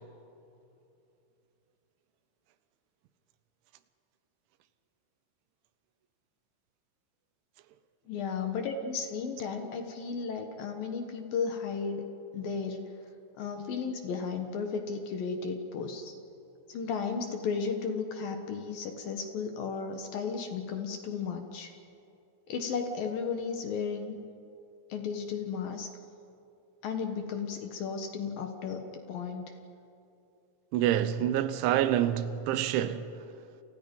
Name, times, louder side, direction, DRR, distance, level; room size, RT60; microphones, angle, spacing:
voice 1, 8.1-12.1 12.3-12.9 13.4-16.1 16.7-21.7 22.5-24.2 24.9-25.9 26.8-29.5, left 5 dB, 65° left, 2.6 m, -34 dB
voice 2, 30.7-33.1, right 11 dB, 80° right, 3.3 m, -27 dB
29.5 x 29.0 x 5.4 m
omnidirectional pair, 5.4 m